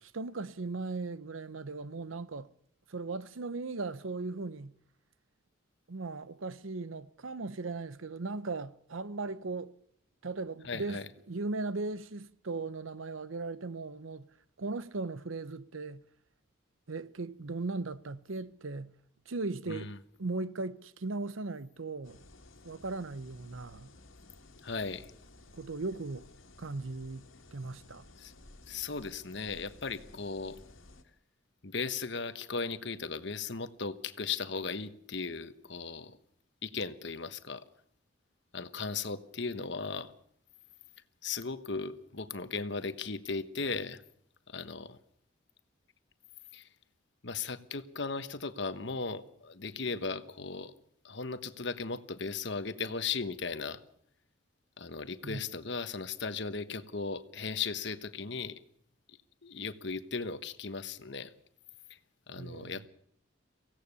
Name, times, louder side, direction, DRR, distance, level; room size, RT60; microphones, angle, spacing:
voice 1, 0.0-2.5 2.9-4.8 5.9-9.7 10.2-14.3 14.6-16.0 16.9-18.9 19.3-19.9 20.2-22.2 22.6-23.9 25.5-26.3 26.6-27.2 27.5-28.0 55.2-55.4 62.3-62.8, right 3 dB, 80° right, 0.8 m, -38 dB
voice 2, 10.6-11.1 19.7-20.0 24.6-25.1 28.2-28.3 28.7-30.6 31.6-36.2 36.6-37.6 38.5-40.1 41.2-44.0 44.5-45.0 46.5-46.7 47.2-50.7 51.0-53.8 54.8-58.6 59.1-61.3 61.9-62.0 62.3-62.9, left 4 dB, 60° left, 1.2 m, -37 dB
sound 1, 22.0-31.0, left 2 dB, 85° left, 2.1 m, -55 dB
24.0 x 16.5 x 6.9 m
head